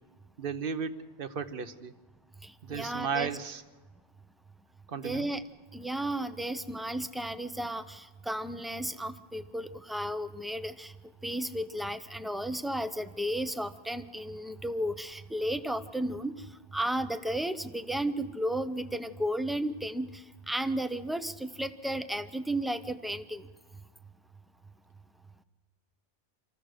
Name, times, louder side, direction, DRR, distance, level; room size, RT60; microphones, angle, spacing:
voice 1, 0.4-1.9 2.6-3.6 4.9-5.3, right 6 dB, 50° right, 11 dB, 1.0 m, -35 dB
voice 2, 2.4-3.3 5.0-5.4 5.7-10.9 11.2-16.4 16.7-23.5, right 1 dB, ahead, 10 dB, 0.4 m, -33 dB
27.0 x 15.0 x 6.5 m, 1.2 s
omnidirectional pair, 1.2 m